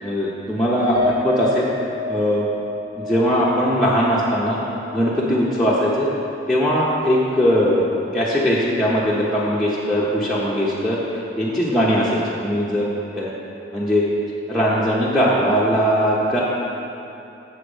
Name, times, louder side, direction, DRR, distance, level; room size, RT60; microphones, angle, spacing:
voice 1, 0.0-1.7 2.1-2.5 3.0-4.6 4.9-6.1 6.5-11.0 11.4-12.9 13.2-13.3 13.7-14.0 14.5-16.4, equal, ahead, -8 dB, 0.8 m, -20 dB
Piano, 0.9-5.4 5.8-5.9 6.3-6.5, left 2 dB, 65° right, 1.6 m, -29 dB
7.1 x 6.5 x 5.1 m, 3.0 s
head